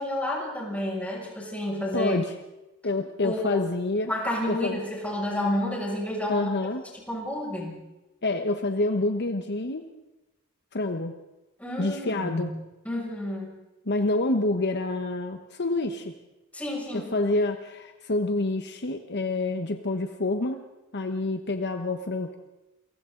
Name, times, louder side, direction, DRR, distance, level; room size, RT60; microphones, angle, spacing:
voice 1, 0.0-2.2 3.2-3.6 4.1-6.5 7.1-7.8 11.6-12.5 12.8-13.6 16.5-17.1, left 1 dB, 5° left, -3 dB, 6.4 m, -30 dB
voice 2, 1.9-2.2 2.8-4.1 4.5-4.8 6.3-6.8 8.2-9.8 10.7-11.1 11.8-12.5 13.9-16.1 16.9-20.6 20.9-22.4, left 2 dB, 50° left, 6 dB, 1.1 m, -27 dB
29.0 x 23.0 x 3.9 m, 1.0 s
head